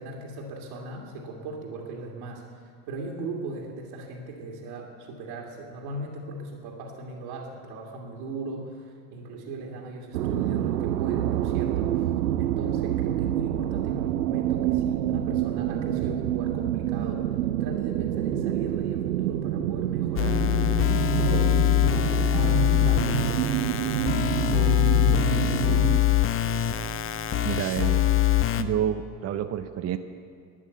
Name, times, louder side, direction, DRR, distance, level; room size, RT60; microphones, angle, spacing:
voice 1, 0.0-12.1 12.4-20.6 21.2-25.9, right 2 dB, 60° right, -4 dB, 2.1 m, -38 dB
sound 1, 10.1-26.0, right 12 dB, 80° right, 0.6 m, -27 dB
sound 2, 20.2-28.6, left 13 dB, 30° left, 0.7 m, -23 dB
voice 2, 27.4-28.1 28.6-30.0, right 10 dB, 35° right, 8 dB, 0.7 m, -28 dB
12.5 x 10.0 x 8.1 m, 2.2 s
figure-of-eight pair, 65°, 47 cm